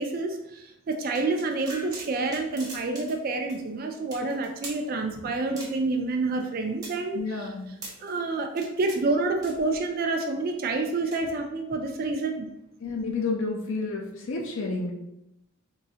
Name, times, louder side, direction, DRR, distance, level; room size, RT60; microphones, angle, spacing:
voice 1, 0.0-12.5, right 3 dB, 45° right, 4 dB, 0.3 m, -28 dB
sound 1, 1.1-3.2 3.5-3.6 4.1-4.8 5.6-6.0 6.4-8.1 8.5-9.0 9.4-9.9 10.9-11.2, right 2 dB, 20° right, 1.1 m, -42 dB
voice 2, 7.1-7.7 12.8-14.9, left 3 dB, 65° left, 0 dB, 0.5 m, -30 dB
3.7 x 3.1 x 2.8 m, 0.87 s
head